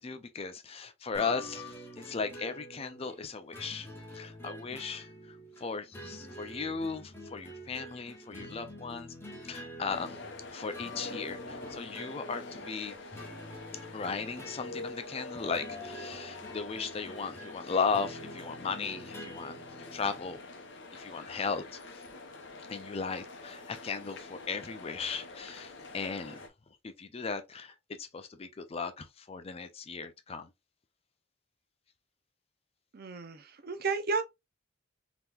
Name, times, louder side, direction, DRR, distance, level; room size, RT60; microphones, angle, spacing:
voice 1, 0.0-3.9 4.1-5.1 5.6-9.1 9.4-10.2 10.5-13.0 13.9-19.6 19.9-20.4 20.9-21.8 22.7-26.4 26.8-30.5, left 5 dB, 30° left, 0.4 m, -36 dB
sound 1, 1.1-20.3, equal, 10° left, 0.8 m, -47 dB
sound 2, 9.9-26.5, left 3 dB, 60° left, 0.7 m, -46 dB
voice 2, 32.9-34.2, right 4 dB, 50° right, 0.5 m, -32 dB
3.6 x 2.9 x 2.3 m
head